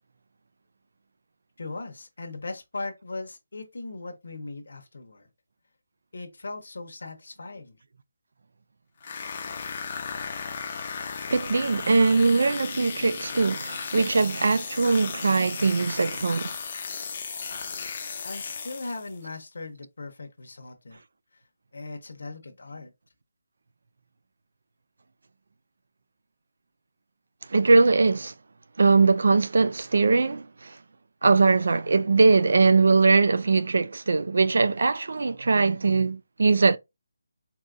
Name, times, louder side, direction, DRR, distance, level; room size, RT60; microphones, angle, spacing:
voice 1, 1.6-5.3 6.1-7.8 18.2-21.0 21.3-21.4 21.7-22.9, left 3 dB, 70° left, 0.9 m, -38 dB
sound 1, 9.0-19.2, left 5 dB, 35° left, 0.5 m, -35 dB
voice 2, 11.3-16.5 27.5-28.3 28.8-30.8 31.2-36.8, right 4 dB, 65° right, 0.3 m, -21 dB
3.8 x 2.7 x 2.5 m
figure-of-eight pair, 170°, 0 cm